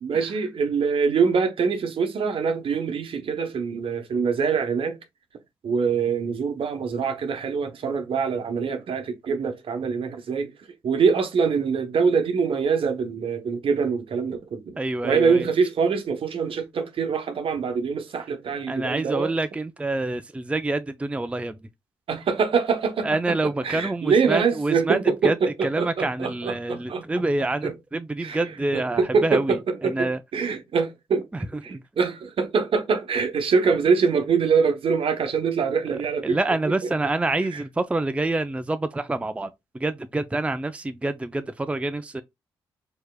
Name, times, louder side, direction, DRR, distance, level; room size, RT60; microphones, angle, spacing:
voice 1, 0.0-5.0 5.6-10.5 10.8-14.8 15.0-19.3 22.1-23.2 23.6-27.0 27.6-27.7 28.2-31.3 31.6-36.9 37.4-37.6, right 5 dB, 60° right, 0.9 m, -24 dB
voice 2, 14.8-15.5 18.7-21.6 23.0-25.4 25.6-30.2 31.7-31.8 36.2-39.5 39.7-42.2, right 2 dB, 10° right, 0.5 m, -27 dB
4.5 x 2.8 x 2.3 m
hypercardioid pair, 45°, 10 cm